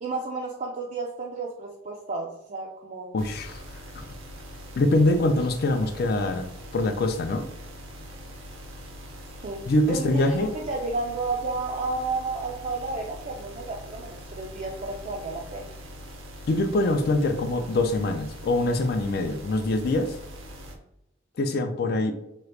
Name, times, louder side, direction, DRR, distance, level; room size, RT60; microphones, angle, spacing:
voice 1, 0.0-3.2 9.4-15.7, right 3 dB, 35° right, -1 dB, 0.3 m, -32 dB
voice 2, 3.1-3.6 4.0-4.1 4.8-6.5 6.7-7.4 9.7-10.5 16.5-20.1 21.4-22.1, left 2 dB, 50° left, 7 dB, 0.4 m, -24 dB
sound 1, 3.2-20.7, equal, 85° right, 0.6 m, -42 dB
2.9 x 2.4 x 3.2 m, 0.82 s
head